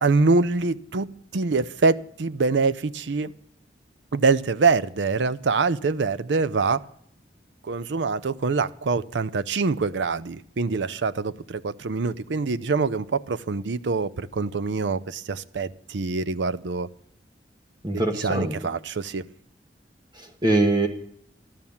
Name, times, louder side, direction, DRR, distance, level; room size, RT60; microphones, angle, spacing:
voice 1, 0.0-3.3 4.1-6.8 7.6-16.9 18.2-19.2, right 4 dB, 85° right, 0.6 m, -24 dB
voice 2, 17.8-18.6 20.1-20.9, right 2 dB, 25° right, 1.3 m, -23 dB
13.5 x 12.5 x 7.1 m
head